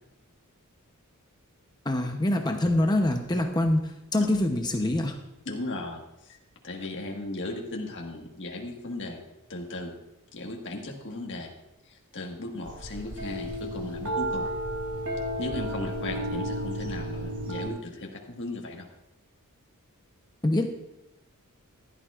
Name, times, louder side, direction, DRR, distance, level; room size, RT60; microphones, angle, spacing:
voice 1, 1.9-5.2 20.4-20.6, left 1 dB, 20° left, 3 dB, 0.7 m, -25 dB
voice 2, 5.4-6.4 6.6-9.2 9.5-9.9 10.3-11.5 11.9-14.5 15.4-18.9, left 2 dB, 55° left, 0 dB, 1.6 m, -36 dB
sound 1, 12.6-17.7, right 1 dB, 90° right, 2.6 m, -32 dB
15.5 x 12.0 x 2.4 m, 0.89 s
head